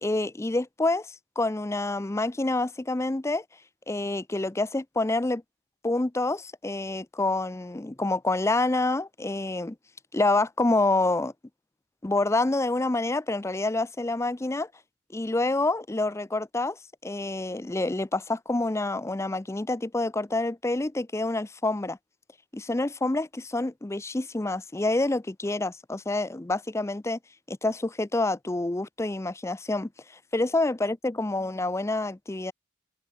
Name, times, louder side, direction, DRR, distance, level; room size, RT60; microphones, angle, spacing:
voice 1, 0.0-3.4 3.9-5.4 5.8-9.8 10.1-11.3 12.0-14.7 15.1-22.0 22.5-27.2 27.5-29.9 30.3-32.5, left 2 dB, 15° left, 0.5 m, -27 dB
open air
head